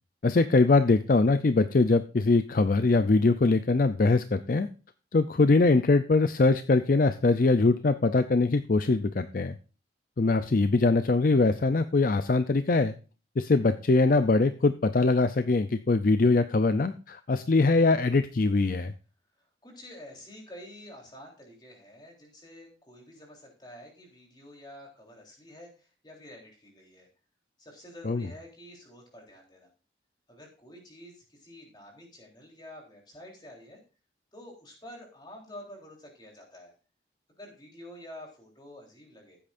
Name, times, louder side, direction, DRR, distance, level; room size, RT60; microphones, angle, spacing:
voice 1, 0.2-4.7 5.1-9.6 10.2-12.9 13.4-18.9 28.0-28.3, left 3 dB, 50° left, 11 dB, 0.5 m, -22 dB
voice 2, 19.4-27.1 27.6-29.7 30.3-33.8 34.3-36.7 37.3-39.4, left 1 dB, 25° left, 0 dB, 3.7 m, -48 dB
15.0 x 8.6 x 2.5 m, 0.35 s
head